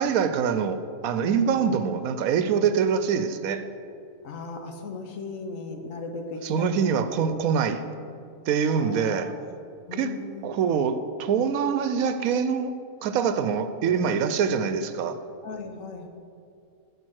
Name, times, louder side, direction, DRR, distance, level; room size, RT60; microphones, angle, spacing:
voice 1, 0.0-3.7 6.4-7.8 8.5-9.3 10.0-10.1 10.4-12.7 13.0-15.2, right 6 dB, 80° right, 11 dB, 1.1 m, -24 dB
voice 2, 1.5-1.8 4.2-7.7 8.7-9.4 9.9-10.6 15.4-16.1, left 3 dB, 65° left, 4 dB, 1.3 m, -37 dB
12.0 x 5.0 x 6.3 m, 2.4 s
omnidirectional pair, 1.5 m